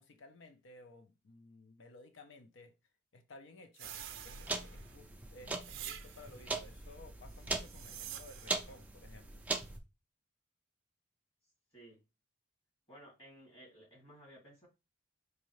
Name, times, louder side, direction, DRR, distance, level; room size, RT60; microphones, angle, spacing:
voice 1, 0.0-2.7 3.1-4.0 4.2-9.4, left 2 dB, 70° left, 0.5 m, -56 dB
sound 1, 3.8-9.8, right 3 dB, 10° right, 0.3 m, -41 dB
sound 2, 3.8-5.0 5.6-6.5 7.4-8.7, right 11 dB, 80° right, 0.5 m, -48 dB
voice 2, 12.9-14.7, right 1 dB, 25° left, 2.4 m, -56 dB
4.6 x 2.7 x 3.1 m
head